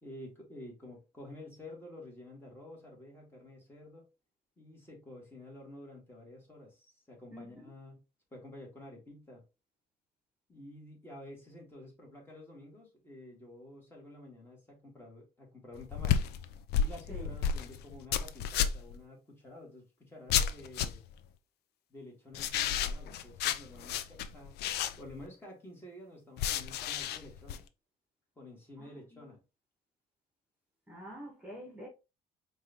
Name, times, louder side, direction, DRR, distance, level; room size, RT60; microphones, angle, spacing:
voice 1, 0.0-4.1 4.6-8.0 8.3-9.4 10.5-16.3 16.7-21.0 21.9-24.6 25.0-27.6 28.4-29.4, left 1 dB, 15° left, 2.2 m, -50 dB
sound 1, 15.8-19.0 20.3-21.1 22.3-25.3 26.4-27.6, left 8 dB, 75° left, 0.5 m, -32 dB
voice 2, 28.8-29.2 30.9-31.9, equal, 5° right, 1.5 m, -47 dB
4.6 x 2.7 x 3.0 m
cardioid pair, 110°, 17 cm